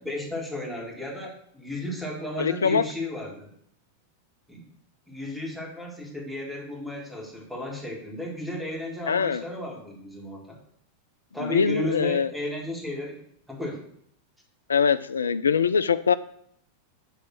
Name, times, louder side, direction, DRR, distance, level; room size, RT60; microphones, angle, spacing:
voice 1, 0.0-3.5 4.5-4.7 5.1-10.6 11.3-13.2 13.5-13.8, left 1 dB, 5° right, -2 dB, 1.8 m, -34 dB
voice 2, 2.4-2.8 9.1-9.4 11.4-12.3 14.7-16.2, left 6 dB, 70° left, 14 dB, 0.3 m, -23 dB
8.3 x 3.1 x 5.9 m, 0.69 s
figure-of-eight pair, 90°, 0 cm